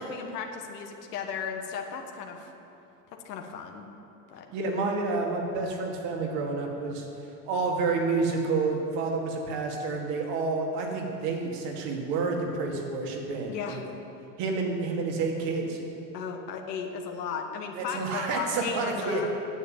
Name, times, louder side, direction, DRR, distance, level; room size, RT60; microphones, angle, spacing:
voice 1, 0.0-2.5 3.2-3.9 4.3-4.5 13.5-13.8 16.1-19.3, left 6 dB, 80° left, 3 dB, 1.4 m, -35 dB
voice 2, 4.5-7.1 7.5-13.8 14.4-15.8 17.8-19.2, right 3 dB, 60° right, 1 dB, 2.4 m, -29 dB
9.8 x 7.2 x 9.2 m, 2.8 s
hypercardioid pair, 95°, 47 cm